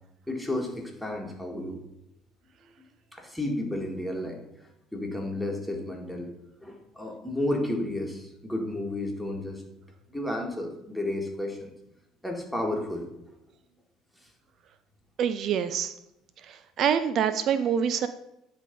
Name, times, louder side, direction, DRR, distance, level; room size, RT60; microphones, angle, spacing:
voice 1, 0.3-1.8 3.1-4.4 4.9-6.3 6.6-9.6 10.1-11.7 12.2-13.1, left 1 dB, ahead, 1 dB, 1.9 m, -32 dB
voice 2, 15.2-15.9 16.5-18.1, right 8 dB, 55° right, 12 dB, 0.4 m, -26 dB
9.9 x 3.4 x 5.3 m, 0.84 s
hypercardioid pair, 65°, 0 cm